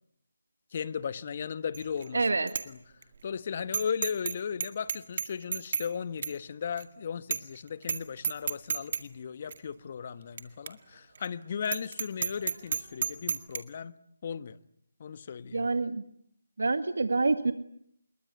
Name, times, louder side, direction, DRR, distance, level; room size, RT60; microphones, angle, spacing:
voice 1, 0.7-2.2 2.7-2.8 3.2-14.0 14.2-14.6 15.0-15.7, left 7 dB, 40° left, 1.3 m, -36 dB
Bicycle bell, 1.7-2.1 2.5-2.7 3.0-3.1 3.7-4.4 4.6-5.9 6.2-6.3 6.8-6.9 7.3-7.6 7.8-8.0 8.2-9.0 9.5-9.6 10.4-10.5 10.7-10.8 11.2-11.3 11.7-13.6, right 6 dB, 45° right, 2.0 m, -31 dB
voice 2, 2.1-2.5 15.5-16.0 16.6-17.5, right 3 dB, 75° right, 1.8 m, -27 dB
26.0 x 21.5 x 9.3 m
figure-of-eight pair, 165°, 0 cm